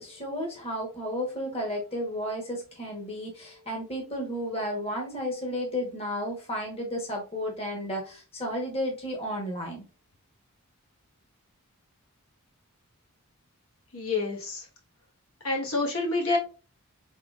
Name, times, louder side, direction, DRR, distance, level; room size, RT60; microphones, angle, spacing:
voice 1, 0.0-9.8, equal, 25° left, 0 dB, 1.1 m, -33 dB
voice 2, 13.9-14.7 15.4-16.4, left 3 dB, 75° left, -2 dB, 1.4 m, -27 dB
4.7 x 3.7 x 2.4 m, 0.34 s
head